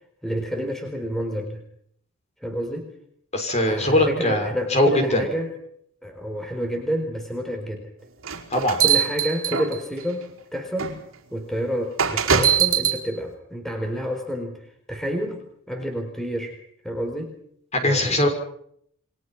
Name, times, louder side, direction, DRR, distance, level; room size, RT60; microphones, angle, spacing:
voice 1, 0.2-1.6 2.4-2.9 3.6-5.5 6.0-7.9 8.8-10.3 10.5-11.0 11.3-14.6 14.9-16.6 16.8-17.3 17.8-18.3, equal, ahead, 4 dB, 4.3 m, -29 dB
voice 2, 3.3-5.2 8.5-8.8 17.7-18.3, left 1 dB, 30° left, 5 dB, 6.1 m, -21 dB
sound 1, 8.2-10.0 10.8-10.9 12.0-13.0, right 8 dB, 70° right, 4.9 m, -21 dB
29.0 x 24.0 x 6.0 m, 0.67 s
head